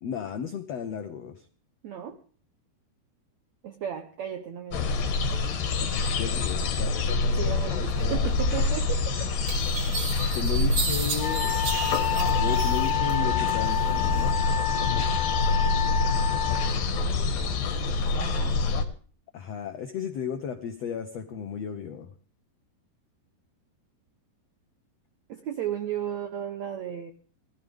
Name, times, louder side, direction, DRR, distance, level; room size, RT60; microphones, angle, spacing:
voice 1, 0.0-1.5 6.2-7.0 10.3-11.6 12.4-14.4 19.3-22.1, left 7 dB, 90° left, 6 dB, 1.4 m, -34 dB
voice 2, 1.8-2.2 3.6-4.9 7.3-9.3 17.0-18.6 25.3-27.1, right 9 dB, 80° right, 7 dB, 1.5 m, -35 dB
sound 1, 4.7-18.8, left 3 dB, 60° left, 3.1 m, -26 dB
sound 2, 8.7-8.8 9.5-13.1 13.5-14.2, right 4 dB, 45° right, 3.6 m, -33 dB
Wind instrument woodwind instrument, 11.2-16.7, left 12 dB, 20° left, 2.2 m, -29 dB
21.0 x 14.5 x 3.6 m, 0.44 s
omnidirectional pair, 4.7 m